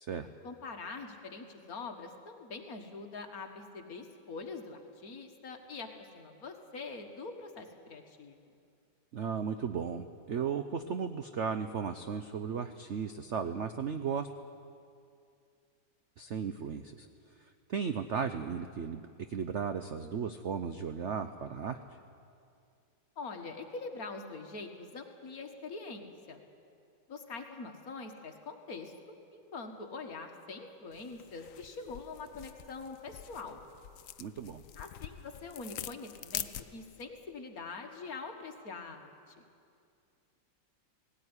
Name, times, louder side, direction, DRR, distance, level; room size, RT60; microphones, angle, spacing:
voice 1, 0.4-8.4 23.2-26.4 27.1-33.6 34.8-39.4, left 4 dB, 50° left, 4 dB, 1.9 m, -44 dB
voice 2, 9.1-14.3 16.2-17.1 17.4-21.8 34.2-34.6, right 6 dB, 65° right, 9 dB, 0.7 m, -35 dB
sound 1, 30.9-37.0, left 11 dB, 70° left, 0.8 m, -45 dB
18.0 x 17.0 x 9.7 m, 2.4 s
omnidirectional pair, 2.0 m